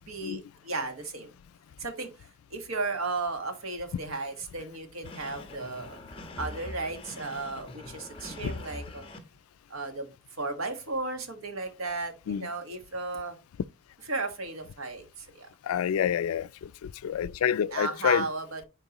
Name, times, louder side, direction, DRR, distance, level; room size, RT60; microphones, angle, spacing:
voice 1, 0.1-1.3 1.8-2.1 2.5-6.0 6.4-9.1 9.7-10.1 10.4-13.4 14.0-15.5 17.7-18.7, right 3 dB, 85° right, 1.5 m, -34 dB
sound 1, 5.0-9.2, left 2 dB, 25° left, 1.0 m, -43 dB
voice 2, 15.7-16.5 17.0-18.2, left 9 dB, 90° left, 0.3 m, -27 dB
9.2 x 4.4 x 2.9 m
head